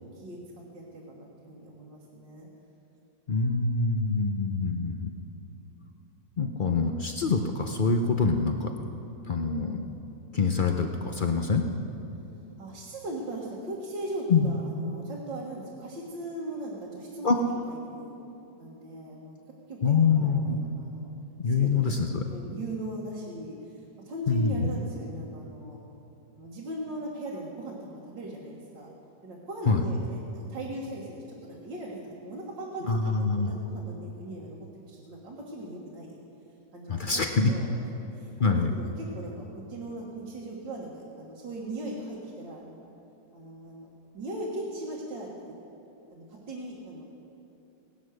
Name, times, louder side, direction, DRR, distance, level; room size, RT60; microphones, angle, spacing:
voice 1, 0.1-2.5 12.6-18.1 18.6-19.4 19.7-21.1 21.4-25.8 26.4-28.9 29.2-36.2 36.7-37.8 38.1-42.9 43.3-45.3 46.1-47.0, right 1 dB, 80° right, -4 dB, 2.3 m, -39 dB
voice 2, 3.3-5.1 6.4-8.7 9.3-9.8 10.3-11.6 14.3-14.5 17.2-17.4 19.8-20.6 21.4-22.2 24.3-24.7 29.7-29.8 32.9-33.5 36.9-37.5 38.4-38.7, left 4 dB, 65° left, 4 dB, 0.5 m, -25 dB
17.5 x 11.5 x 6.4 m, 2.9 s
omnidirectional pair, 2.0 m